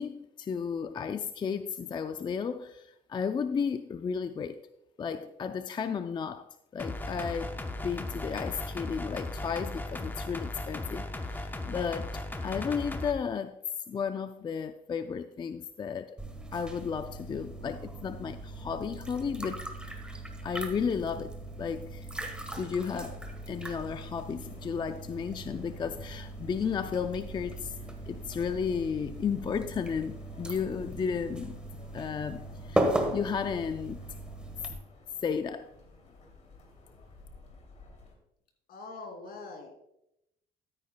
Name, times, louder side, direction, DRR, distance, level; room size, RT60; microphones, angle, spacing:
voice 1, 0.0-4.6 5.0-13.6 13.9-16.2 16.5-20.0 20.4-22.1 22.5-23.2 23.5-27.8 28.1-31.6 31.9-34.0 35.2-35.7, left 6 dB, 25° left, 0.4 m, -33 dB
sound 1, 6.8-13.1, left 2 dB, 10° left, 0.8 m, -37 dB
sound 2, 16.2-34.7, right 1 dB, 5° right, 1.3 m, -38 dB
sound 3, 22.9-38.1, left 2 dB, 45° left, 2.7 m, -56 dB
voice 2, 38.7-39.8, left 3 dB, 65° left, 2.7 m, -43 dB
13.0 x 9.4 x 2.2 m
cardioid pair, 110°, 17 cm